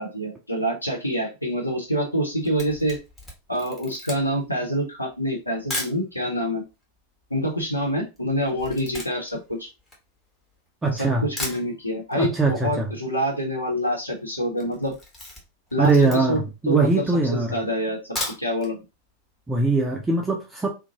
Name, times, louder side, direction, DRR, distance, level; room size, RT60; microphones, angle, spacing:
voice 1, 0.0-3.0 3.5-6.6 7.3-9.7 10.9-14.9 15.7-17.0 17.3-18.8, equal, 85° left, 0 dB, 0.9 m, -26 dB
Camera, 2.3-6.0 6.7-6.8 7.0-10.7 11.1-11.2 11.4-12.2 12.5-12.6 12.9-13.0 13.1-13.6 13.9-14.1 14.5-16.5 17.0-17.1 17.9-18.7 19.1-19.2 19.5-19.6, left 1 dB, 15° left, 1.1 m, -36 dB
voice 2, 10.8-11.3 12.1-12.9 15.8-17.5 19.5-20.7, right 3 dB, 10° right, 1 dB, 0.5 m, -21 dB
2.6 x 2.1 x 2.8 m, 0.26 s
figure-of-eight pair, 90°, 0 cm